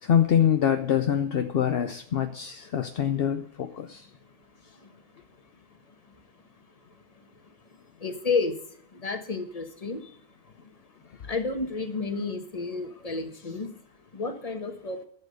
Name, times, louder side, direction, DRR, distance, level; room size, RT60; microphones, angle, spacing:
voice 1, 0.0-4.1, left 9 dB, 55° left, 7 dB, 0.7 m, -25 dB
voice 2, 8.0-8.5 9.0-10.0 11.3-13.7 14.1-15.0, left 4 dB, 25° left, 7 dB, 1.4 m, -30 dB
12.0 x 7.3 x 6.5 m, 0.63 s
omnidirectional pair, 1.6 m